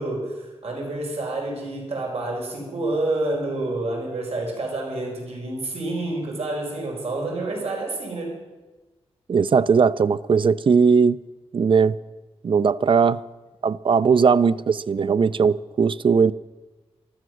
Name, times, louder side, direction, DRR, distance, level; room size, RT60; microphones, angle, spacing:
voice 1, 0.0-8.4, right 2 dB, 70° right, 4.7 m, -28 dB
voice 2, 9.3-11.2 11.5-12.0 12.4-13.2 13.6-16.3, right 5 dB, 50° right, 0.4 m, -18 dB
14.5 x 12.5 x 6.3 m
wide cardioid pair, 115°, 11 cm